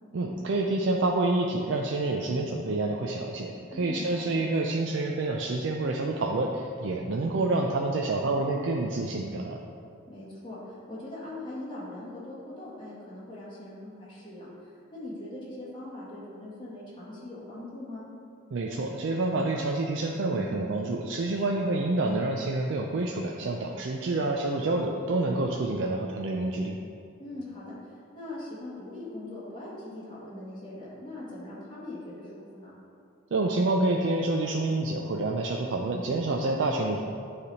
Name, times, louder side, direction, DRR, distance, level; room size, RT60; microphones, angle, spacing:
voice 1, 0.1-9.6 18.5-26.8 33.3-37.0, right 2 dB, 65° right, 1 dB, 0.4 m, -28 dB
voice 2, 3.7-4.4 10.1-18.0 21.3-21.8 27.2-32.7, left 1 dB, 25° left, -8 dB, 1.6 m, -41 dB
9.2 x 3.4 x 4.1 m, 2.4 s
head